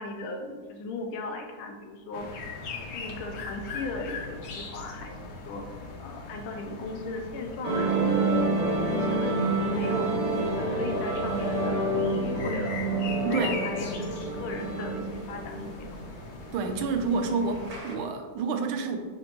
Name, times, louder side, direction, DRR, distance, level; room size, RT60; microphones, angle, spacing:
voice 1, 0.0-2.3 2.9-8.3 8.8-11.9 12.2-12.8 13.3-16.0, left 2 dB, 90° left, 3 dB, 1.7 m, -37 dB
sound 1, 2.1-17.8, left 3 dB, 65° left, 1.4 m, -41 dB
sound 2, 7.6-17.9, right 2 dB, 35° right, 0.6 m, -28 dB
voice 2, 13.2-13.6 16.5-19.0, right 4 dB, 85° right, 5 dB, 1.5 m, -28 dB
6.7 x 5.1 x 3.0 m, 1.5 s
omnidirectional pair, 2.2 m